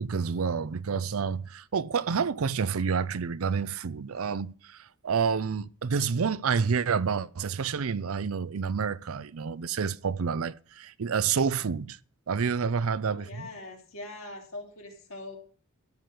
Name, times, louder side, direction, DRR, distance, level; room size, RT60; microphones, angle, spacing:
voice 1, 0.0-12.0 12.3-13.5, right 6 dB, 70° right, 0.5 m, -29 dB
voice 2, 13.1-15.4, left 2 dB, 65° left, 3.6 m, -42 dB
13.0 x 5.1 x 7.7 m
head